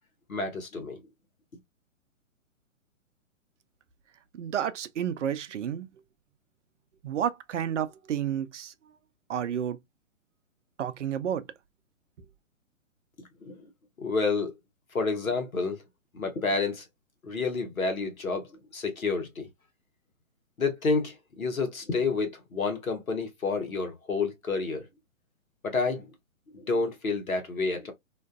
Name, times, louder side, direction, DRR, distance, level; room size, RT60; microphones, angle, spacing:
voice 1, 0.3-1.0 13.4-13.5 14.0-14.5 14.9-15.8 16.1-16.8 17.2-19.5 20.6-24.9 25.6-26.1 26.5-27.9, left 4 dB, 90° left, 0.9 m, -29 dB
voice 2, 4.3-5.9 7.0-8.7 9.3-9.8 10.8-11.4, right 9 dB, 65° right, 0.5 m, -30 dB
2.5 x 2.2 x 2.2 m
figure-of-eight pair, 120°, 40 cm